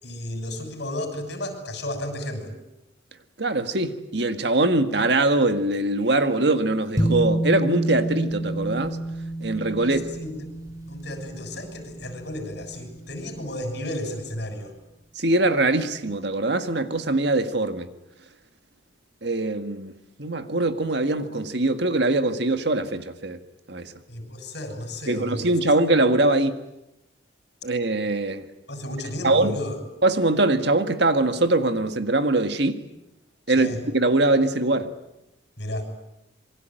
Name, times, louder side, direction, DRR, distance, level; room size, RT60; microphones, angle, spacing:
voice 1, 0.0-2.5 9.8-10.4 10.9-14.7 24.1-25.5 28.7-29.8 33.6-33.8 35.6-35.8, left 1 dB, 55° left, 7.0 m, -33 dB
voice 2, 3.4-9.0 9.4-10.0 15.2-17.9 19.2-19.9 20.2-23.4 23.7-23.9 25.1-26.6 27.6-28.5 29.2-29.6 30.0-32.8 33.5-34.9, right 2 dB, 60° right, 1.8 m, -22 dB
sound 1, 7.0-13.6, right 1 dB, 20° right, 6.3 m, -29 dB
27.5 x 24.0 x 9.2 m
head